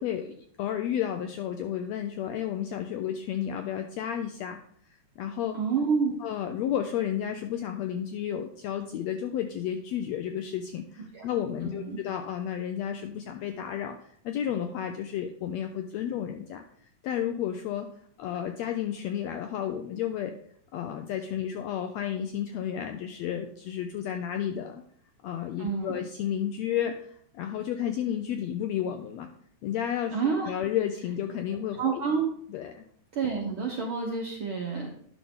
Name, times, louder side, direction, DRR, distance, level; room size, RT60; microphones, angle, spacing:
voice 1, 0.0-4.6 5.2-5.6 6.2-16.6 17.0-17.9 18.2-20.4 20.7-24.8 25.2-29.3 29.6-30.1 30.4-32.0 32.5-32.8, left 10 dB, 85° left, 6 dB, 1.5 m, -32 dB
voice 2, 5.5-6.1 11.1-11.3 11.6-12.0 25.6-25.9 30.1-30.5 31.8-32.2 33.1-34.9, right 5 dB, 70° right, 0 dB, 1.2 m, -28 dB
10.0 x 6.0 x 3.6 m, 0.63 s
omnidirectional pair, 3.6 m